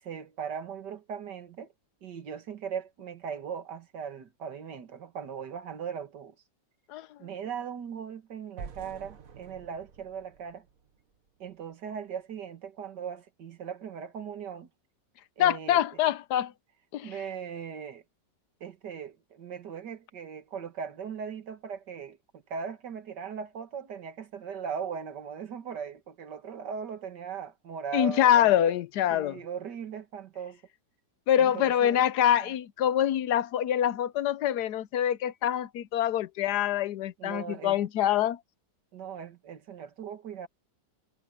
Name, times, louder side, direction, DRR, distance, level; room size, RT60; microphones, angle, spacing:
voice 1, 0.0-1.7 2.0-6.4 7.2-10.7 11.4-14.7 15.4-16.0 17.0-18.0 18.6-28.7 29.1-30.6 31.4-32.0 32.4-32.5 37.2-37.8 38.9-40.5, right 7 dB, 70° right, 2.2 m, -39 dB
sound 1, 8.6-11.6, right 6 dB, 50° right, 1.7 m, -47 dB
voice 2, 15.4-16.5 16.9-17.1 27.9-29.4 31.3-38.4, left 11 dB, 70° left, 1.2 m, -25 dB
omnidirectional pair, 2.0 m